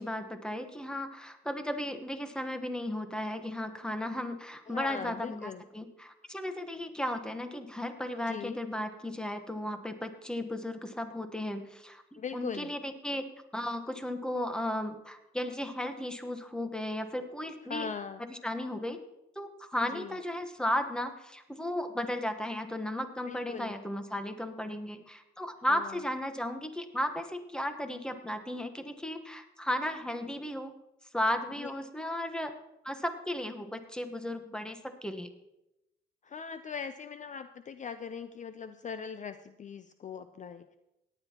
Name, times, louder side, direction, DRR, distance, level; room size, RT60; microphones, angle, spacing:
voice 1, 0.0-13.3 13.5-17.9 18.3-19.0 19.4-30.7 31.1-32.5 32.8-35.3, left 1 dB, 5° left, 7 dB, 1.1 m, -35 dB
voice 2, 4.7-5.6 8.3-8.6 12.2-12.8 17.6-18.2 19.9-20.2 23.3-23.7 25.7-26.0 31.6-31.7 36.2-40.8, left 6 dB, 40° left, 11 dB, 0.5 m, -40 dB
17.5 x 10.0 x 2.9 m, 0.91 s
cardioid pair, 90°, 20 cm